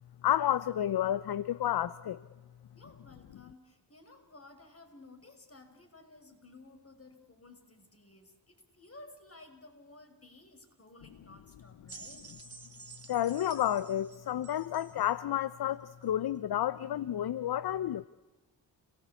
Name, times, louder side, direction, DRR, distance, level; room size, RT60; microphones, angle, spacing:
voice 1, 0.2-2.2 13.1-18.1, left 11 dB, 55° left, 16 dB, 0.9 m, -30 dB
voice 2, 2.7-12.3, left 2 dB, 30° left, 6 dB, 5.8 m, -55 dB
sound 1, 11.9-15.1 16.0-16.1, right 3 dB, 30° right, 3.7 m, -51 dB
30.0 x 17.5 x 8.3 m, 1.1 s
supercardioid pair, 45°, 47 cm